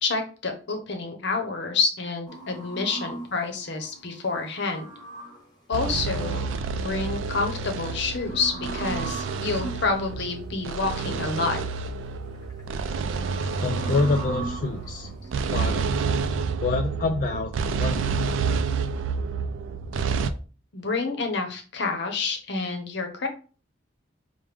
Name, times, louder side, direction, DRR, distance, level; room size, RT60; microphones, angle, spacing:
voice 1, 0.0-4.9 5.7-6.5 6.8-11.6 20.7-23.3, left 4 dB, 65° left, 4 dB, 0.8 m, -28 dB
Bullfrog orchestra, 2.3-5.5 7.7-9.9 11.3-11.9 12.3-15.7, right 2 dB, 20° left, 1.2 m, -39 dB
sound 1, 5.7-20.3, right 5 dB, 85° right, 0.3 m, -29 dB
voice 2, 13.6-15.1 15.5-15.9 16.6-18.1, left 3 dB, 45° left, 3 dB, 0.3 m, -27 dB
4.7 x 2.2 x 3.3 m, 0.37 s
head